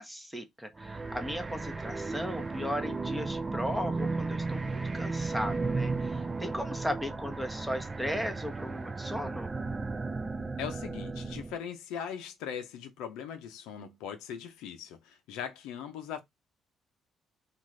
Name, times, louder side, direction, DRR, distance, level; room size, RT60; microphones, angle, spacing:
voice 1, 0.0-9.5, equal, 5° right, 0.8 m, -36 dB
sound 1, 0.8-11.6, right 3 dB, 25° right, 0.4 m, -35 dB
voice 2, 10.6-16.2, left 8 dB, 90° left, 0.6 m, -40 dB
2.5 x 2.4 x 3.1 m
cardioid pair, 85°, 0 cm